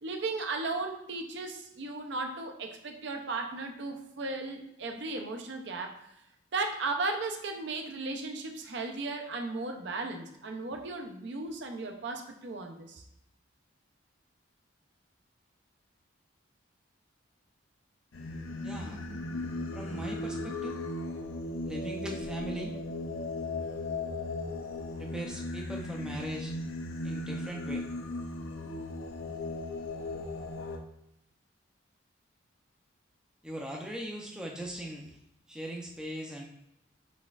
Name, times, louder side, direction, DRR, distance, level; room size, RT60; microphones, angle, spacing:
voice 1, 0.0-6.0 6.5-13.0, right 3 dB, 60° right, 4 dB, 0.5 m, -36 dB
Singing, 18.1-30.8, left 2 dB, 85° left, 0.5 m, -37 dB
voice 2, 18.6-19.0 19.7-20.8 21.6-22.7 25.0-26.5 27.0-27.8 33.4-35.2 35.5-36.4, equal, 5° right, -1 dB, 0.4 m, -39 dB
4.3 x 4.1 x 2.4 m, 0.81 s
head